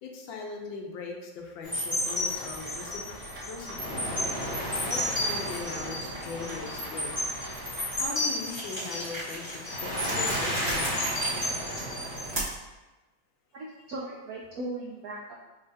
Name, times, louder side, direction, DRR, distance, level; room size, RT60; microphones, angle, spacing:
voice 1, 0.0-3.0 3.4-4.1 4.9-7.1 7.9-10.9, left 4 dB, 75° left, 1 dB, 1.3 m, -40 dB
sound 1, 1.6-12.4, left 1 dB, 20° left, 1.2 m, -32 dB
Rain, 2.0-8.1, equal, 65° right, 1.3 m, -45 dB
sound 2, 8.4-12.7, right 1 dB, 20° right, 0.8 m, -37 dB
voice 2, 13.5-15.3, right 2 dB, 80° right, -3 dB, 0.8 m, -38 dB
5.5 x 3.0 x 2.6 m, 1.1 s
omnidirectional pair, 2.2 m